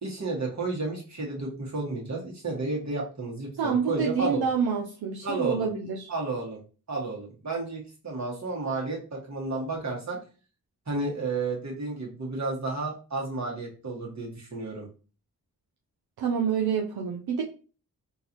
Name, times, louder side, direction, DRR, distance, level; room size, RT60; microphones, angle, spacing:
voice 1, 0.0-4.4 5.2-5.7 6.1-6.6 6.9-10.2 10.9-14.9, right 3 dB, 45° right, -2 dB, 1.7 m, -32 dB
voice 2, 3.6-6.1 16.2-17.4, right 6 dB, 75° right, 0 dB, 0.6 m, -27 dB
3.8 x 2.7 x 2.9 m, 0.36 s
cardioid pair, 40°, 38 cm